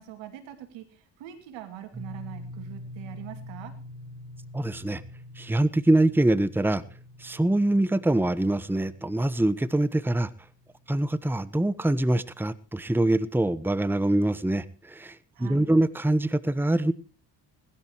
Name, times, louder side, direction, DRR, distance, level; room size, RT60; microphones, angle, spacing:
voice 1, 0.0-3.7 15.3-15.7, right 12 dB, 85° right, 2.7 m, -42 dB
sound 1, 1.9-11.8, left 1 dB, 30° right, 3.9 m, -45 dB
voice 2, 4.5-5.0 5.4-6.8 7.2-10.3 10.9-16.9, right 1 dB, 5° right, 1.1 m, -24 dB
22.0 x 12.5 x 3.0 m
hypercardioid pair, 50°, 45 cm